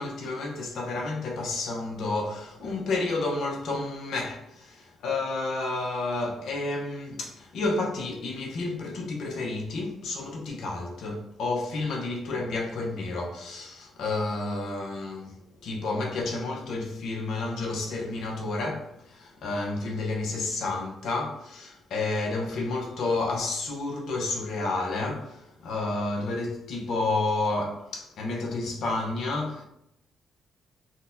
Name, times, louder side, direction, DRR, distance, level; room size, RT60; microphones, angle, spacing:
voice 1, 0.0-29.6, left 3 dB, 70° left, 0.8 m, -30 dB
3.9 x 2.2 x 2.6 m
cardioid pair, 90°, 0 cm